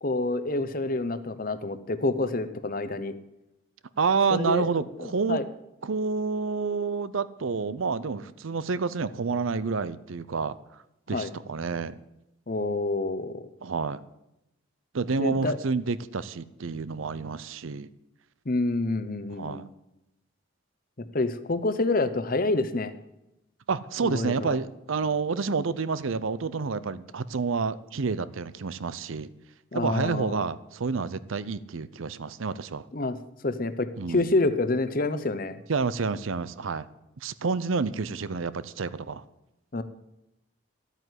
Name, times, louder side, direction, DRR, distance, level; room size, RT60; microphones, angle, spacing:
voice 1, 0.0-3.2 4.3-4.7 5.0-5.5 11.1-11.3 12.5-13.5 15.2-15.6 18.5-19.6 21.0-22.9 24.0-24.6 29.7-30.4 32.9-33.2 33.4-35.6 39.7-39.8, left 2 dB, 45° left, 12 dB, 0.8 m, -28 dB
voice 2, 4.0-5.4 5.8-10.6 11.1-12.0 13.6-14.0 14.9-17.9 19.3-19.6 23.7-29.3 29.7-32.9 34.0-34.3 35.7-36.9 37.2-39.2, right 4 dB, 80° right, 16 dB, 0.6 m, -29 dB
12.5 x 9.2 x 8.2 m, 0.90 s
head